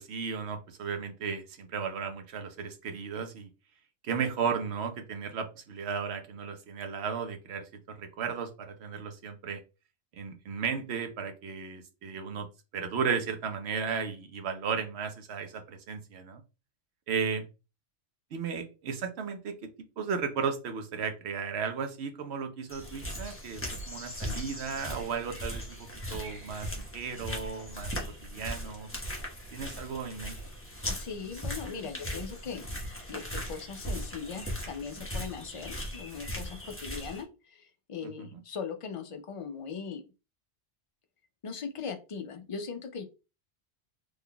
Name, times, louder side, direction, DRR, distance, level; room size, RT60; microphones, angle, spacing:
voice 1, 0.0-3.5 4.0-9.6 10.1-12.5 12.7-16.4 17.1-17.4 18.3-19.7 20.0-27.9 28.2-28.9 29.5-30.4 38.0-38.4, right 6 dB, 70° right, 6 dB, 0.9 m, -35 dB
sound 1, 22.7-37.2, equal, 10° left, 0.8 m, -38 dB
voice 2, 30.9-32.7 33.1-40.1 41.4-43.0, left 6 dB, 60° left, 6 dB, 0.3 m, -39 dB
3.7 x 3.3 x 2.2 m, 0.30 s
omnidirectional pair, 1.2 m